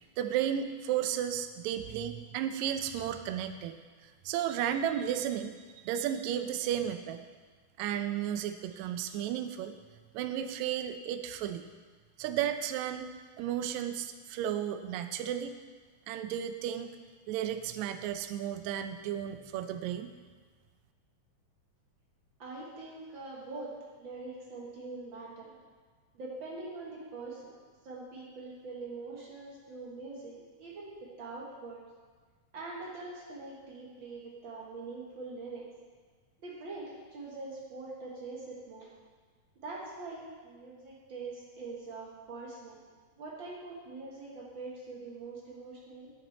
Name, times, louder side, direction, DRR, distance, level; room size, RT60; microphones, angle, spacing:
voice 1, 0.0-3.7 4.0-7.2 7.8-9.8 10.1-11.6 12.2-13.1 13.4-15.6 16.1-17.0 17.3-20.1, right 10 dB, 90° right, 8 dB, 1.6 m, -33 dB
voice 2, 22.4-25.6 26.1-27.5 27.8-31.8 32.5-35.7 36.4-38.9 39.5-42.8 43.1-46.1, right 3 dB, 60° right, -4 dB, 1.3 m, -43 dB
9.4 x 7.5 x 4.2 m, 1.5 s
omnidirectional pair, 3.9 m